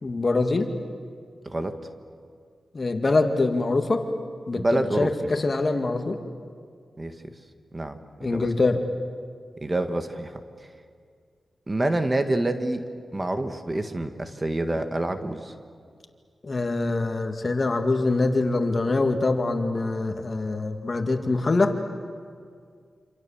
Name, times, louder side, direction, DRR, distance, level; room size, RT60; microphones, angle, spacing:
voice 1, 0.0-0.7 2.7-4.0 4.5-6.2 8.2-8.8 16.4-21.7, left 3 dB, 45° left, 5 dB, 2.1 m, -24 dB
voice 2, 1.5-1.8 4.6-5.1 7.0-7.1 7.7-8.5 9.6-10.3 11.7-12.8 13.1-15.5, right 1 dB, 30° right, 7 dB, 1.7 m, -27 dB
27.5 x 27.0 x 7.3 m, 2.1 s
cardioid pair, 65°, 0 cm